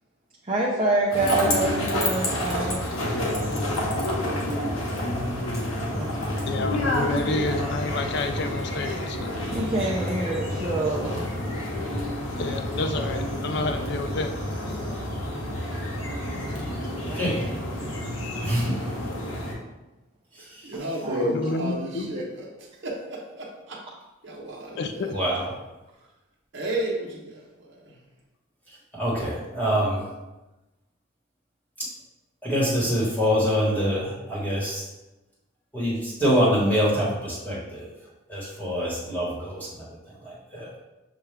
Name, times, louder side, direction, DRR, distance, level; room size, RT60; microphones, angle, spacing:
voice 1, 0.4-2.8 5.8-6.1 9.5-11.3 16.4-17.3 17.7-17.9 20.7-21.4, right 2 dB, 30° right, -5 dB, 0.5 m, -27 dB
sound 1, 1.1-19.5, left 1 dB, 80° left, 1.0 m, -29 dB
voice 2, 6.5-9.3 12.4-14.3 21.2-22.1 24.8-25.2, left 3 dB, 55° left, 6 dB, 0.3 m, -29 dB
voice 3, 17.1-17.5 18.4-18.7 20.4-20.7 25.1-25.5 28.9-30.0 32.4-34.8 35.7-37.9 38.3-39.8 40.2-40.7, equal, 10° left, -6 dB, 1.2 m, -25 dB
voice 4, 20.4-22.5 22.8-23.8 24.2-25.2 26.5-27.9, right 1 dB, 60° right, -3 dB, 0.9 m, -32 dB
6.7 x 2.3 x 3.3 m, 1.0 s
head